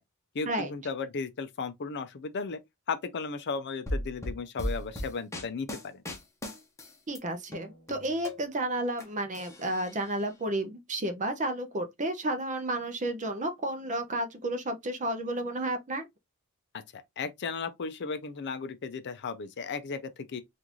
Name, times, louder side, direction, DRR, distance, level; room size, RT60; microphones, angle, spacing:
voice 1, 0.3-2.6 2.9-6.0 16.9-20.4, left 4 dB, 50° left, 0.5 m, -35 dB
sound 1, 3.9-7.2 7.5-9.0 9.3-10.2, equal, 15° left, 0.8 m, -37 dB
voice 2, 7.1-16.1, right 1 dB, 35° right, 0.7 m, -32 dB
3.7 x 2.5 x 2.9 m
head